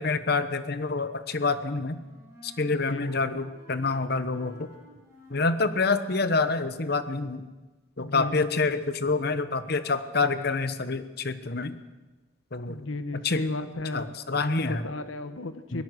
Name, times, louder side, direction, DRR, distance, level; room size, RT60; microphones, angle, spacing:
voice 1, 0.0-2.0 2.4-4.7 5.3-7.4 8.0-11.8 12.5-12.8 13.1-13.4 13.9-14.9 15.7-15.8, left 3 dB, 50° left, 12 dB, 1.0 m, -27 dB
Wind instrument woodwind instrument, 1.2-6.8, right 1 dB, 15° right, 6.8 m, -54 dB
voice 2, 2.7-3.2 8.0-8.5 12.7-14.1 14.3-15.8, left 2 dB, 80° left, 10 dB, 1.2 m, -34 dB
23.0 x 18.0 x 6.4 m, 1.2 s
head